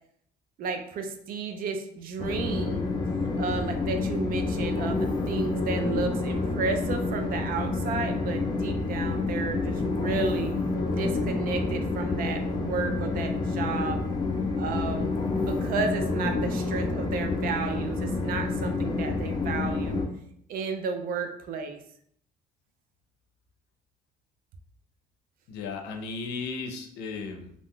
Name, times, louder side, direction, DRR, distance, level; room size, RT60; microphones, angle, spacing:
voice 1, 0.6-2.9 3.4-10.6 10.9-14.0 14.6-20.0 20.5-21.8, right 5 dB, 60° right, 6 dB, 0.4 m, -32 dB
Train, 2.2-20.0, left 3 dB, 25° left, 0.5 m, -28 dB
voice 2, 25.5-27.5, left 4 dB, 85° left, 5 dB, 0.5 m, -35 dB
2.4 x 2.2 x 3.5 m, 0.69 s
cardioid pair, 110°, 17 cm